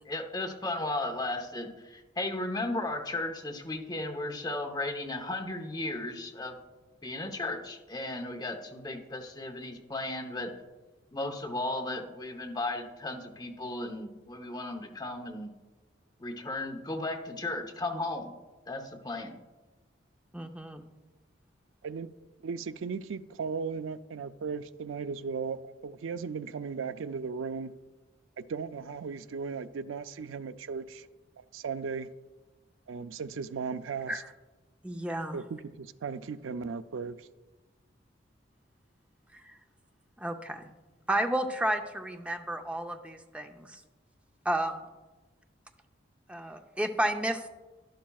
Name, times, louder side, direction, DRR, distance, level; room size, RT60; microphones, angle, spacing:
voice 1, 0.0-6.6 7.0-10.5 11.1-15.5 16.2-18.3 18.7-19.4, left 2 dB, 20° left, 0.9 m, -35 dB
voice 2, 20.3-20.8 34.1-34.2 34.8-35.4 39.3-39.6 40.2-40.7 41.1-43.8 44.4-44.9 46.3-47.5, right 1 dB, 5° right, 0.5 m, -32 dB
voice 3, 22.4-27.7 28.4-31.1 31.4-32.1 32.9-34.2 35.3-37.3, right 5 dB, 90° right, 0.4 m, -36 dB
11.5 x 11.5 x 2.3 m
head